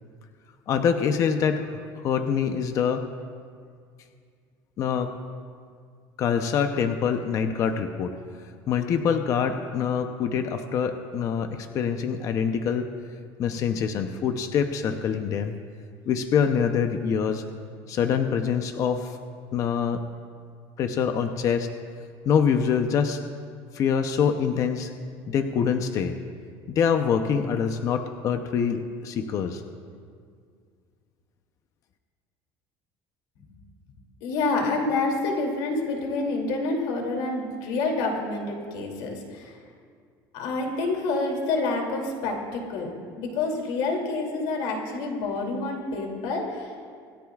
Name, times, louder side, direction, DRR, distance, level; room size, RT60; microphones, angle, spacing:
voice 1, 0.7-3.1 4.8-5.1 6.2-8.1 8.7-12.9 13.4-15.5 16.1-17.4 17.9-19.2 19.5-20.0 20.8-21.7 22.3-23.2 23.7-24.9 25.3-26.2 26.7-29.6, left 7 dB, 40° left, 7 dB, 0.7 m, -25 dB
voice 2, 34.2-39.6 40.3-42.9 43.2-46.7, left 3 dB, 75° left, 1 dB, 2.8 m, -28 dB
26.5 x 13.5 x 2.4 m, 2.1 s
cardioid pair, 165°, 9 cm